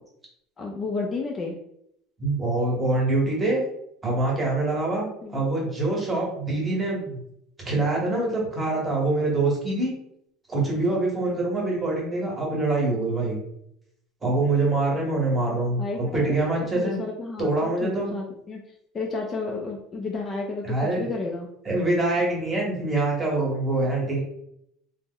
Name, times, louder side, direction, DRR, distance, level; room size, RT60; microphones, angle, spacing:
voice 1, 0.6-1.6 5.2-5.3 15.8-16.4 16.7-21.5, left 3 dB, 25° left, 0 dB, 0.4 m, -32 dB
voice 2, 2.2-3.6 4.0-7.2 7.6-9.9 10.5-13.4 14.2-15.8 16.1-17.0 17.4-18.1 20.6-21.1 21.7-24.2, right 2 dB, 15° right, -2 dB, 0.9 m, -24 dB
2.9 x 2.0 x 3.6 m, 0.75 s
cardioid pair, 160°, 0 cm